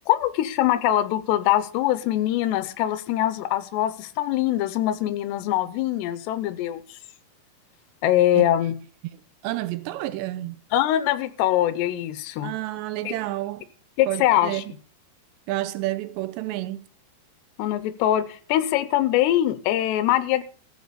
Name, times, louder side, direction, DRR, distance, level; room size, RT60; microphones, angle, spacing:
voice 1, 0.1-7.0 8.0-8.7 10.7-12.5 13.1-13.2 14.0-14.6 17.6-20.4, left 13 dB, 80° left, 2.9 m, -23 dB
voice 2, 9.4-10.6 12.4-13.7 14.1-14.7 15.5-16.8, right 16 dB, 85° right, 2.9 m, -30 dB
14.5 x 6.9 x 6.7 m
omnidirectional pair, 4.9 m